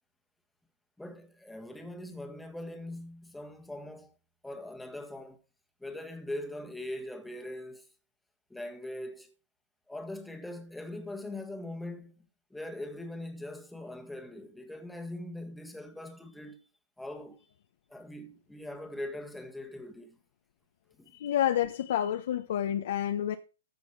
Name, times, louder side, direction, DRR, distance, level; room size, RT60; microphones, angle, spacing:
voice 1, 1.0-4.1 4.4-5.4 5.8-7.9 8.5-9.3 9.9-12.2 12.5-16.7 17.0-17.5 17.9-20.2 21.0-21.1, left 1 dB, ahead, 1.7 m, -41 dB
voice 2, 21.1-23.4, left 11 dB, 55° left, 1.2 m, -29 dB
14.5 x 6.2 x 4.8 m
hypercardioid pair, 170°, 0 cm